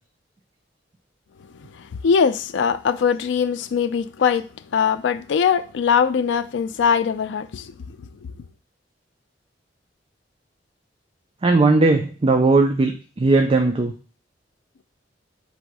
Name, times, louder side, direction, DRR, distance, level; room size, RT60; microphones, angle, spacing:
voice 1, 1.6-8.0, left 6 dB, 75° left, 0.3 m, -21 dB
voice 2, 11.4-13.9, right 3 dB, 30° right, 0.4 m, -18 dB
4.1 x 2.6 x 4.6 m
head